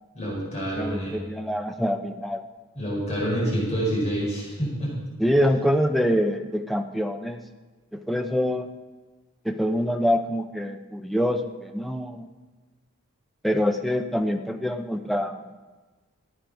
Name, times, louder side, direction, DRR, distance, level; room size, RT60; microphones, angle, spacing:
voice 1, 0.1-1.2 2.7-4.9, equal, 30° left, -4 dB, 4.9 m, -27 dB
voice 2, 0.8-2.4 5.2-7.4 7.9-8.7 9.4-12.3 13.4-15.5, equal, ahead, 5 dB, 0.6 m, -25 dB
15.0 x 9.7 x 5.3 m, 1.3 s
head